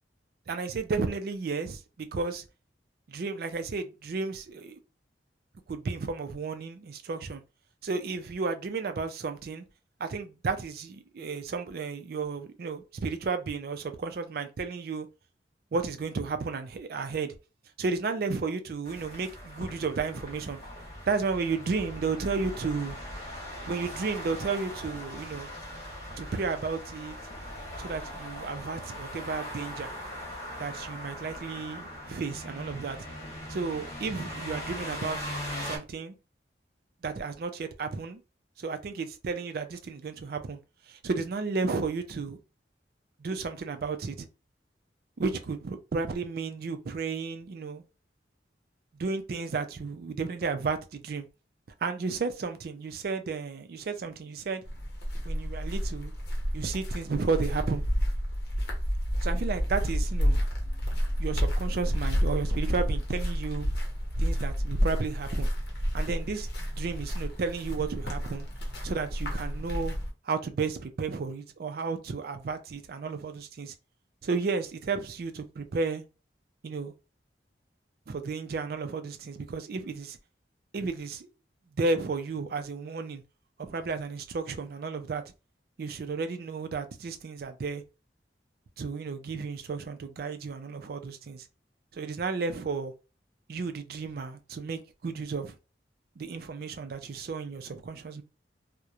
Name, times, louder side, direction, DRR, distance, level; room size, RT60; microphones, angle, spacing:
voice 1, 0.5-2.4 3.1-4.8 5.7-7.4 7.8-9.6 10.0-15.1 15.7-17.4 17.8-20.6 21.1-23.0 23.7-25.5 26.2-27.2 27.8-29.9 30.6-33.1 33.5-35.3 35.6-36.1 37.0-38.2 38.6-40.6 40.9-42.4 43.2-44.3 45.2-47.8 48.9-51.3 51.8-54.6 55.2-56.1 56.5-57.9 59.2-60.5 61.2-63.7 64.2-65.5 65.9-68.5 68.8-70.0 70.3-73.7 74.2-76.0 76.6-76.9 78.1-80.2 80.7-81.3 81.8-83.2 83.6-85.2 85.8-87.8 88.8-91.5 91.9-92.9 93.5-95.6 96.2-98.2, right 4 dB, 55° right, 0.4 m, -33 dB
sound 1, 18.8-35.8, equal, 40° left, 1.1 m, -40 dB
sound 2, 54.6-70.1, equal, 60° left, 0.7 m, -30 dB
2.9 x 2.1 x 2.4 m
head